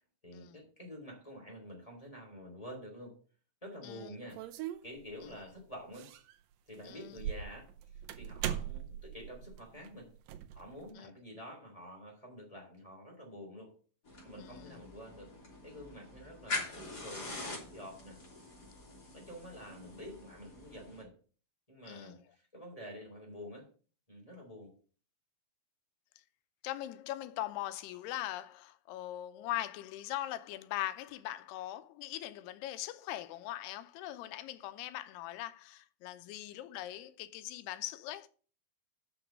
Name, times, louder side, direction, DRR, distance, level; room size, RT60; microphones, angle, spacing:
voice 1, 0.2-3.2 3.6-4.4 4.8-6.1 6.7-10.1 10.5-13.7 14.2-15.3 15.6-18.2 19.1-21.1 21.7-23.7 24.1-24.7, equal, 10° left, 2.7 m, -48 dB
sound 1, 4.3-5.3 5.9-6.4 6.7-10.9, right 10 dB, 75° right, 2.3 m, -41 dB
voice 2, 6.9-7.2 11.0-11.1 14.4-14.7 21.9-22.2 26.6-38.3, left 14 dB, 90° left, 2.7 m, -41 dB
sound 2, 14.0-21.0, left 3 dB, 25° left, 3.6 m, -44 dB
6.8 x 6.0 x 7.5 m
omnidirectional pair, 4.6 m